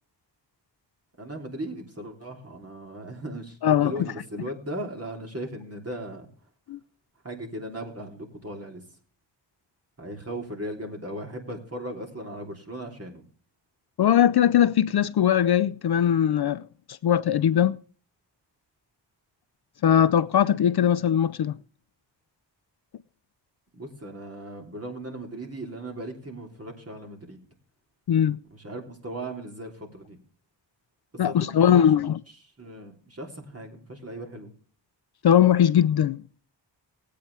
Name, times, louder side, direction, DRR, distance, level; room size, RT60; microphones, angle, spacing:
voice 1, 1.2-3.6 3.8-6.3 7.2-8.8 10.0-13.2 23.7-27.4 28.5-30.2 31.1-34.5, right 1 dB, 30° right, 3.2 m, -37 dB
voice 2, 14.0-17.8 19.8-21.6 28.1-28.4 31.2-32.2 35.2-36.2, left 9 dB, 60° left, 0.5 m, -20 dB
20.0 x 8.6 x 3.3 m
wide cardioid pair, 95°, 44 cm